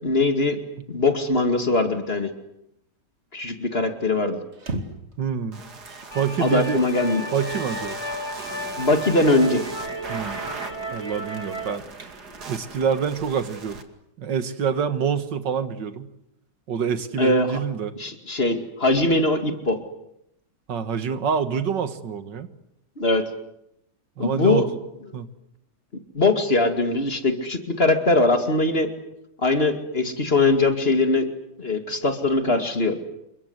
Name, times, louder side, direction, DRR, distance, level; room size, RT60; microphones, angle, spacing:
voice 1, 0.0-0.6 0.9-2.3 3.3-4.4 6.4-7.3 8.8-9.6 17.2-17.6 18.0-19.8 23.0-23.2 24.2-24.7 26.1-28.9 29.4-31.3 31.6-33.0, left 2 dB, 35° left, 6 dB, 2.6 m, -21 dB
sound 1, 4.5-5.1 5.8-6.1 6.5-6.6 7.4-8.5 9.0-9.4 9.7-10.1 10.5-10.8 11.1-11.2 11.7-12.5, right 2 dB, 40° right, 2.6 m, -37 dB
voice 2, 5.2-5.6 6.1-6.8 7.3-8.0 10.1-10.4 10.9-11.8 12.5-13.8 14.2-16.1 16.7-17.9 20.7-22.5 24.2-24.8 25.1-25.3, right 7 dB, 90° right, 10 dB, 2.3 m, -26 dB
sound 2, 5.5-13.8, right 4 dB, 65° right, 2.9 m, -39 dB
sound 3, 6.1-11.8, equal, 15° left, 1.9 m, -34 dB
28.5 x 23.5 x 8.1 m, 0.80 s
omnidirectional pair, 1.9 m